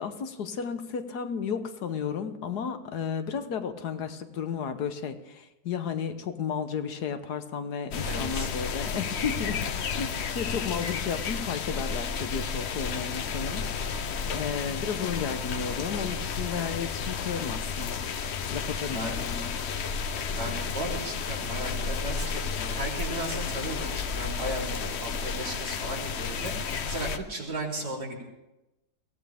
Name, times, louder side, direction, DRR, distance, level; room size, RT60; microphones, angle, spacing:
voice 1, 0.0-18.0 18.5-19.5, left 6 dB, 90° left, 9 dB, 1.6 m, -33 dB
sound 1, 7.9-27.2, left 5 dB, 55° left, 0.9 m, -32 dB
voice 2, 8.0-8.5 18.9-19.3 20.1-28.2, right 1 dB, 85° right, -3 dB, 4.1 m, -36 dB
22.5 x 16.5 x 3.5 m, 0.97 s
omnidirectional pair, 1.6 m